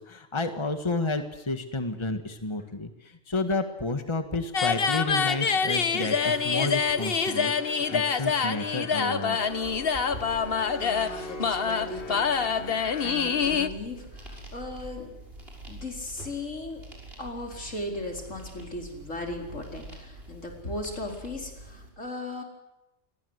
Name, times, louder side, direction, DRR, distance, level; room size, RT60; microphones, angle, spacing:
voice 1, 0.0-9.4, left 2 dB, 20° left, 7 dB, 1.7 m, -31 dB
sound 1, 4.5-13.7, left 5 dB, 50° left, 1.4 m, -26 dB
sound 2, 9.4-21.9, right 1 dB, 50° right, 6.9 m, -46 dB
voice 2, 10.8-15.1 15.7-16.8 17.2-22.4, left 2 dB, 75° left, 2 dB, 4.9 m, -37 dB
28.5 x 22.5 x 8.1 m, 0.95 s
omnidirectional pair, 1.3 m